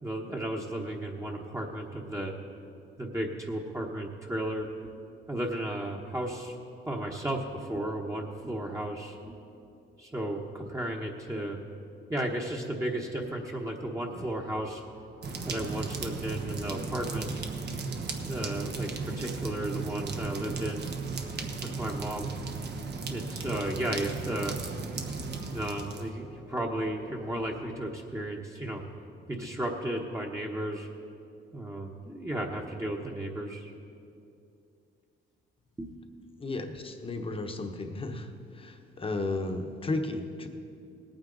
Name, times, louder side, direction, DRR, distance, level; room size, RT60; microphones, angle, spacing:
voice 1, 0.0-2.3 3.0-4.9 5.3-6.5 6.9-9.4 10.0-11.6 12.1-14.8 15.4-17.4 18.2-20.9 21.6-22.3 23.1-24.6 25.5-28.8 29.3-30.9 31.5-33.7 35.8-36.0, right 1 dB, 15° right, -1 dB, 1.2 m, -34 dB
Musical instrument, 14.1-27.7, left 4 dB, 65° left, 1.8 m, -54 dB
sound 1, 15.2-26.1, right 4 dB, 60° right, 1.2 m, -36 dB
voice 2, 36.4-38.3 38.5-40.5, left 2 dB, 25° left, 5 dB, 1.1 m, -34 dB
18.5 x 9.0 x 4.0 m, 2.6 s
cardioid pair, 90°, 20 cm